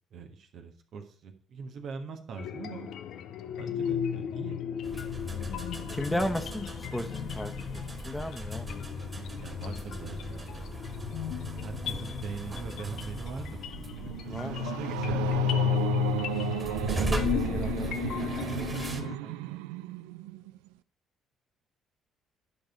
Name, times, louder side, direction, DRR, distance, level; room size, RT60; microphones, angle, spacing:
voice 1, 0.1-2.9 3.5-4.6 9.4-10.6 10.9-11.2 11.6-13.6 14.0-15.4, right 5 dB, 60° right, 5 dB, 1.4 m, -42 dB
sound 1, 2.4-19.2, left 10 dB, 65° left, 0.6 m, -34 dB
sound 2, 4.8-19.0, right 2 dB, 30° right, 2.2 m, -39 dB
voice 2, 5.9-8.8 14.3-14.7 16.8-18.5 19.0-19.6, left 1 dB, 10° left, 7 dB, 1.3 m, -36 dB
sound 3, 13.4-20.7, right 14 dB, 75° right, 0.3 m, -35 dB
10.5 x 5.2 x 5.1 m, 0.42 s
hypercardioid pair, 50°, 0 cm